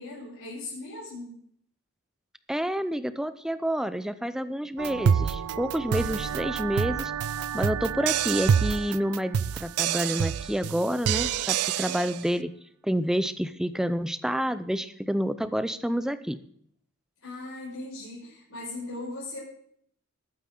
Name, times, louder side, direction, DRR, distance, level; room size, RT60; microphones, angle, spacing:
voice 1, 0.0-1.4 17.2-19.4, left 2 dB, 70° left, -8 dB, 5.2 m, -38 dB
voice 2, 2.5-7.1 7.5-12.5 12.8-16.4, equal, ahead, 12 dB, 0.5 m, -29 dB
sound 1, 4.8-12.2, right 8 dB, 80° right, 0.4 m, -27 dB
20.5 x 8.8 x 3.8 m, 0.66 s
head